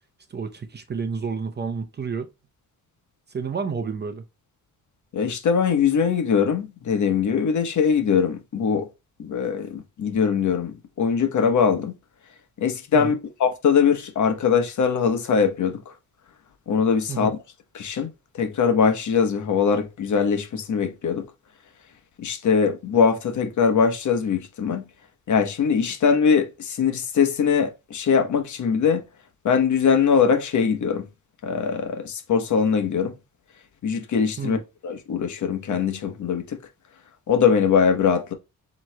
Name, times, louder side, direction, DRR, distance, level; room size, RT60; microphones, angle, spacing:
voice 1, 0.3-2.3 3.3-4.2 12.9-13.2 17.1-17.4 34.4-34.6, right 5 dB, 30° right, 0.7 m, -30 dB
voice 2, 5.1-8.9 9.2-11.9 12.6-13.1 13.4-15.8 16.7-17.3 17.7-18.1 18.4-21.3 22.2-24.8 25.3-29.0 29.4-31.1 31.4-33.1 33.8-34.6 34.8-36.6 37.3-38.3, left 6 dB, 55° left, 1.0 m, -21 dB
7.3 x 3.1 x 2.2 m
cardioid pair, 95°, 34 cm